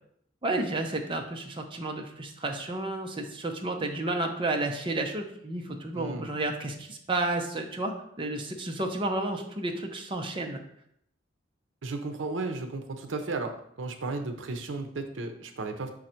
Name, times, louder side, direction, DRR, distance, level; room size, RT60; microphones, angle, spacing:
voice 1, 0.4-10.6, right 2 dB, 25° right, 3 dB, 0.7 m, -31 dB
voice 2, 5.9-6.3 11.8-15.9, right 3 dB, 80° right, 6 dB, 0.7 m, -34 dB
6.2 x 3.9 x 4.4 m, 0.70 s
head